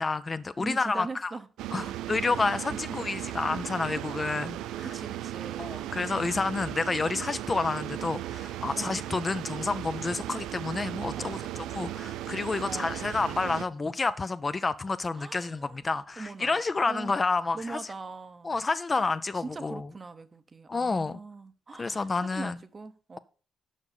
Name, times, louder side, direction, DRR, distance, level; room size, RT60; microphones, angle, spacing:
voice 1, 0.0-1.3 1.7-4.9 5.6-11.4 11.7-17.8 18.4-19.9 20.7-21.2 21.8-22.5, left 3 dB, 30° left, 0.4 m, -29 dB
voice 2, 0.6-1.5 1.8-2.0 2.2-2.8 4.8-5.8 8.7-9.2 11.1-11.7 12.6-13.3 15.1-15.8 16.2-17.2 17.5-18.6 18.9-23.2, right 3 dB, 30° right, 0.8 m, -42 dB
sound 1, 1.6-13.6, right 13 dB, 90° right, 0.3 m, -36 dB
7.3 x 5.3 x 6.7 m
cardioid pair, 90°, 0 cm